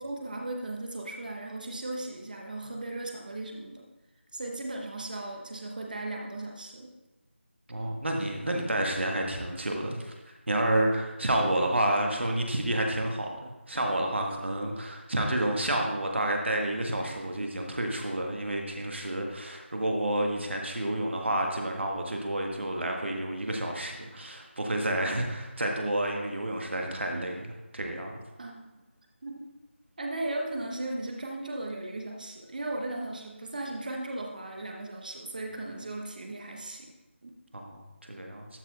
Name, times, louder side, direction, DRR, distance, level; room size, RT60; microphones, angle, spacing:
voice 1, 0.0-3.8 4.3-6.9 28.4-28.7 29.2-29.4 30.0-36.9 37.2-37.3, right 2 dB, 40° right, 1 dB, 1.1 m, -36 dB
voice 2, 7.7-10.1 10.5-28.2 37.5-38.5, right 1 dB, 65° right, 1 dB, 1.6 m, -30 dB
12.5 x 4.5 x 4.1 m, 1.1 s
figure-of-eight pair, 165°, 7 cm